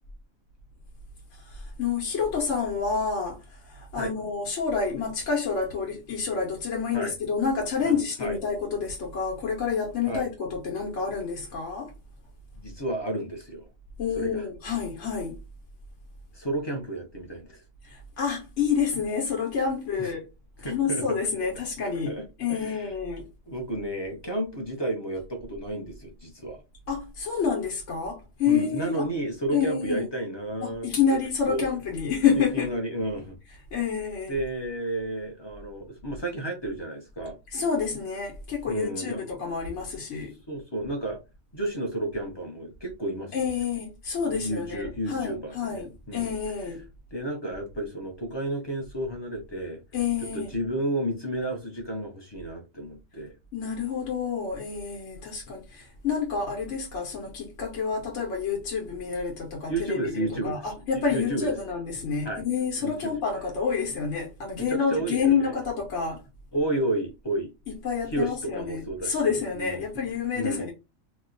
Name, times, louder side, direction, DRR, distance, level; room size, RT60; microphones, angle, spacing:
voice 1, 1.3-11.9 14.0-15.4 17.8-20.3 20.6-23.3 26.9-29.1 29.5-30.0 30.6-32.7 33.7-34.4 37.5-40.3 43.3-46.8 49.9-50.5 53.5-66.2 67.7-70.7, left 6 dB, 65° left, 1.2 m, -28 dB
voice 2, 7.8-8.4 10.1-10.3 12.5-13.7 14.1-14.4 16.3-17.6 20.0-20.1 20.6-21.2 22.1-22.9 23.5-26.6 28.5-31.2 31.5-31.6 32.3-33.4 34.3-37.4 38.7-39.2 40.5-41.2 41.5-43.4 44.3-46.3 47.1-49.8 50.3-53.3 59.7-60.6 60.9-61.5 62.2-62.4 62.8-63.2 64.6-65.6 66.5-67.5 68.1-70.0 70.3-70.7, right 1 dB, 30° left, 0.5 m, -32 dB
2.9 x 2.2 x 3.7 m
omnidirectional pair, 1.4 m